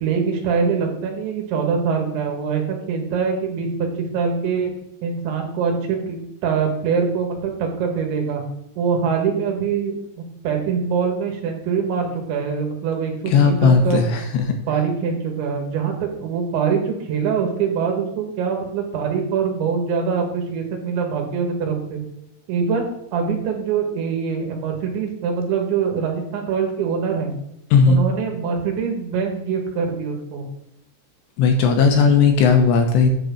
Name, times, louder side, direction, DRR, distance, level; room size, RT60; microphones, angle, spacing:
voice 1, 0.0-3.9 4.1-4.7 5.0-8.4 8.8-10.0 10.4-14.0 14.7-22.0 22.5-27.3 27.9-30.5, right 6 dB, 75° right, 2 dB, 3.6 m, -23 dB
voice 2, 13.3-14.4 27.7-28.0 31.4-33.1, left 5 dB, 80° left, 4 dB, 2.8 m, -16 dB
9.2 x 4.0 x 7.0 m, 0.80 s
omnidirectional pair, 5.4 m